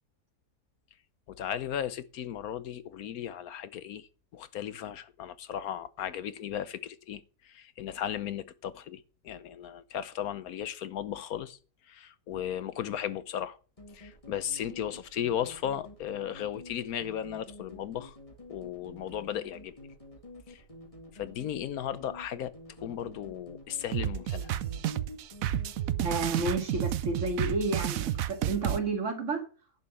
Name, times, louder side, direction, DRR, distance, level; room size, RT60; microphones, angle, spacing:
voice 1, 1.3-4.1 4.3-11.6 11.8-13.6 13.9-18.2 18.5-19.7 20.5-20.6 21.1-22.5 22.8-24.5, left 10 dB, 70° left, 1.1 m, -36 dB
sound 1, 13.8-26.7, left 1 dB, 20° left, 2.5 m, -49 dB
sound 2, 23.9-28.8, right 11 dB, 65° right, 1.0 m, -31 dB
voice 2, 26.0-29.4, right 2 dB, 50° right, 2.3 m, -31 dB
11.0 x 5.6 x 7.1 m
omnidirectional pair, 1.7 m